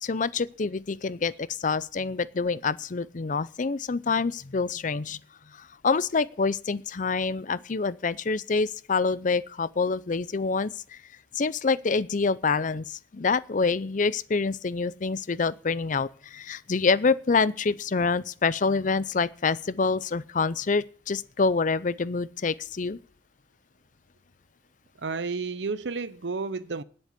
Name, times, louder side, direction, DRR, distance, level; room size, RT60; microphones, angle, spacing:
voice 1, 0.0-5.2 5.5-11.0 11.3-23.0, left 4 dB, 45° left, 0.6 m, -26 dB
voice 2, 25.0-26.8, right 4 dB, 75° right, 0.7 m, -31 dB
10.0 x 7.9 x 8.3 m
head